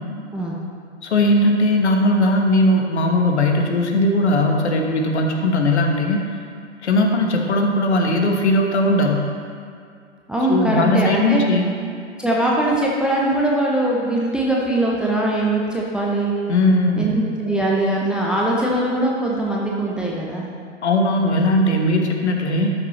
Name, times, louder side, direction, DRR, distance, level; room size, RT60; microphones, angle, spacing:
voice 1, 1.0-6.2 6.8-9.2 10.5-11.7 16.5-17.1 20.8-22.7, left 1 dB, 65° left, 2 dB, 1.4 m, -18 dB
voice 2, 10.3-11.4 12.2-16.3 17.0-20.4, right 1 dB, ahead, -4 dB, 0.6 m, -21 dB
12.5 x 6.6 x 3.2 m, 2.3 s
figure-of-eight pair, 115°, 36 cm